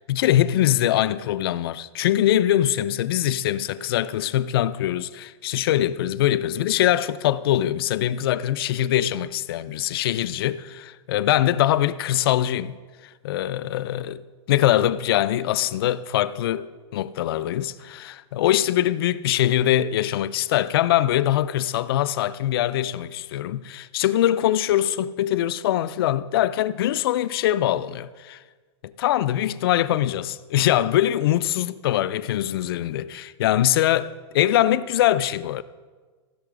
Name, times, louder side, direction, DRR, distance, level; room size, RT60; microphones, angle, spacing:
voice 1, 0.0-12.8 13.2-14.2 14.5-28.4 28.8-35.6, left 12 dB, 55° left, 0.4 m, -23 dB
16.0 x 5.7 x 4.9 m
supercardioid pair, 175°, 15 cm